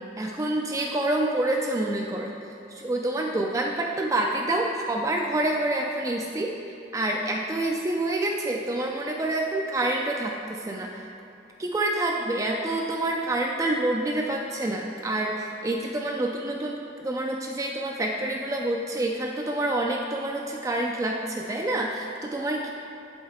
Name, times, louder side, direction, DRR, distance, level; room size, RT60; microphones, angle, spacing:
voice 1, 0.2-2.3 2.7-11.1 11.6-22.7, right 1 dB, 15° right, 0 dB, 0.3 m, -27 dB
7.7 x 5.3 x 3.6 m, 2.6 s
head